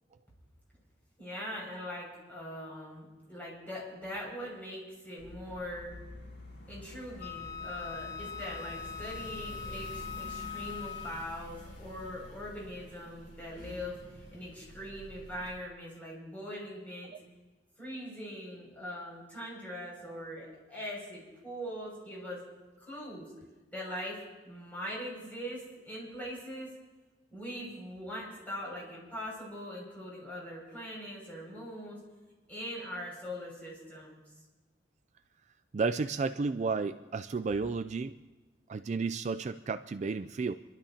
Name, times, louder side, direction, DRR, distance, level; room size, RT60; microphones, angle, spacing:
voice 1, 1.2-5.9 6.7-17.1 17.8-22.4 22.8-23.3 23.7-26.7 27.3-32.0 32.5-34.2, equal, 10° left, -5 dB, 6.2 m, -42 dB
sound 1, 5.2-15.6, left 1 dB, 85° left, 4.4 m, -48 dB
Wind instrument woodwind instrument, 7.2-11.4, left 7 dB, 60° left, 0.8 m, -42 dB
voice 2, 35.7-38.1 38.7-40.5, right 4 dB, 40° right, 11 dB, 0.3 m, -32 dB
28.0 x 12.5 x 2.9 m, 1.2 s
head